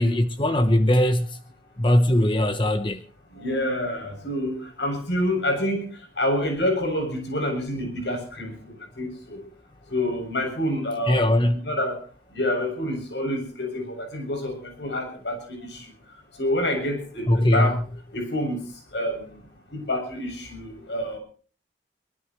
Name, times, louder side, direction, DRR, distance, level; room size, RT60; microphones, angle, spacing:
voice 1, 0.0-1.4 1.8-3.0 11.1-11.7 17.3-17.8, left 1 dB, 25° left, 1.0 m, -20 dB
voice 2, 3.3-5.8 6.2-9.4 9.9-12.0 12.3-15.9 16.4-17.8 18.1-18.6 18.9-19.3 19.7-21.2, left 1 dB, 80° left, 7.4 m, -28 dB
24.0 x 19.0 x 3.2 m
head